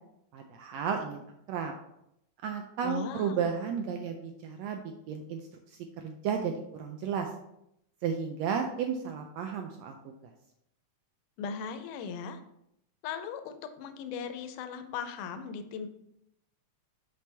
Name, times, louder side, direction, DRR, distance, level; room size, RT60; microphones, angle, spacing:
voice 1, 0.3-1.2 1.5-1.7 2.4-5.4 6.0-7.3 8.0-10.1, right 7 dB, 85° right, 4 dB, 1.5 m, -33 dB
voice 2, 2.8-3.5 11.4-12.4 13.0-15.9, left 6 dB, 85° left, 8 dB, 2.2 m, -38 dB
6.0 x 5.9 x 3.3 m, 0.79 s
omnidirectional pair, 3.6 m